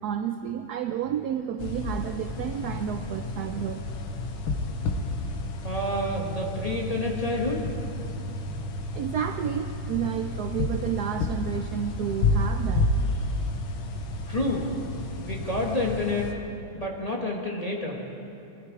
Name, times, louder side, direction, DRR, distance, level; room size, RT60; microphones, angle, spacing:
voice 1, 0.0-3.9 8.5-8.6 8.9-13.3, right 9 dB, 80° right, 7 dB, 0.9 m, -31 dB
sound 1, 1.6-16.3, left 2 dB, 80° left, 1.9 m, -31 dB
voice 2, 5.6-7.6 14.3-14.8 15.2-16.3 16.7-18.0, left 1 dB, 20° left, -1 dB, 1.4 m, -29 dB
22.0 x 13.0 x 4.8 m, 2.8 s
omnidirectional pair, 2.2 m